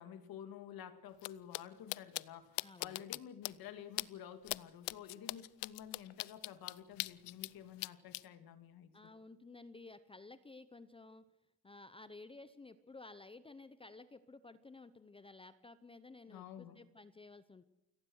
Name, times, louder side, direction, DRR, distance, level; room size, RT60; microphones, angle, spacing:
voice 1, 0.0-8.9 16.3-16.8, left 9 dB, 60° left, 10 dB, 2.3 m, -51 dB
sound 1, 1.2-1.3 1.5-1.6 1.9-2.2 2.6-3.2 3.4-3.5 4.0-4.1 4.5-4.6 4.9-7.5 7.8-8.2, left 23 dB, 85° left, 0.7 m, -39 dB
voice 2, 2.6-3.2 8.9-11.3 11.6-17.6, left 3 dB, 15° left, 13 dB, 0.7 m, -54 dB
29.0 x 18.0 x 6.4 m, 0.91 s
cardioid pair, 150°, 41 cm